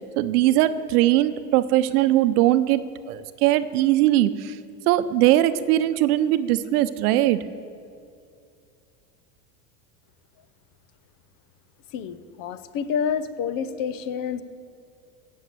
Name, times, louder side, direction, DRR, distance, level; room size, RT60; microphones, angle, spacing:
voice 1, 0.2-2.8 3.1-4.6 4.9-7.4, right 14 dB, 70° right, 13 dB, 0.8 m, -20 dB
voice 2, 11.9-14.4, left 7 dB, 45° left, 13 dB, 0.8 m, -28 dB
15.5 x 6.6 x 7.9 m, 2.4 s
supercardioid pair, 110°, 47 cm